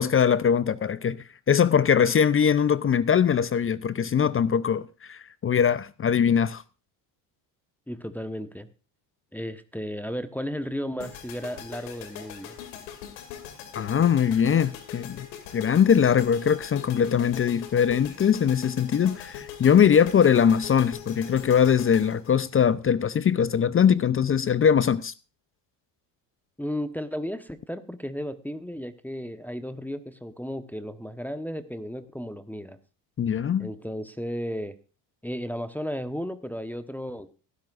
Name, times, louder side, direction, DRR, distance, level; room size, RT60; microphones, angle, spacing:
voice 1, 0.0-6.6 13.7-15.3 15.5-25.1 33.2-33.7, left 8 dB, 25° left, 0.6 m, -21 dB
voice 2, 7.9-8.7 9.3-12.6 26.6-32.8 33.6-34.8 35.2-37.3, equal, 5° left, 1.1 m, -34 dB
sound 1, 11.0-23.2, left 9 dB, 85° left, 2.7 m, -42 dB
18.0 x 11.0 x 2.5 m
supercardioid pair, 80°, 49 cm